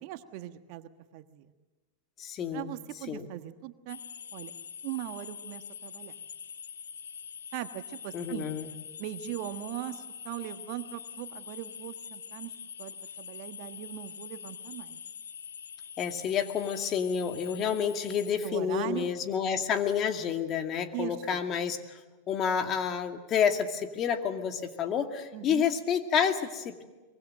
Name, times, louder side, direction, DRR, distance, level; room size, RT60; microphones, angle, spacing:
voice 1, 0.0-1.5 2.5-4.0 4.3-4.5 4.8-6.1 7.5-8.5 9.0-12.5 12.8-15.0 18.4-19.1 20.9-21.4 25.3-25.6, right 14 dB, 55° right, 9 dB, 1.4 m, -39 dB
voice 2, 2.2-2.7 3.1-3.3 8.1-8.7 16.0-22.0 22.3-26.8, left 7 dB, 35° left, 6 dB, 2.2 m, -29 dB
sound 1, 3.9-18.3, left 7 dB, 85° left, 1.0 m, -44 dB
24.0 x 22.5 x 7.7 m, 1.2 s
hypercardioid pair, 100°, 0 cm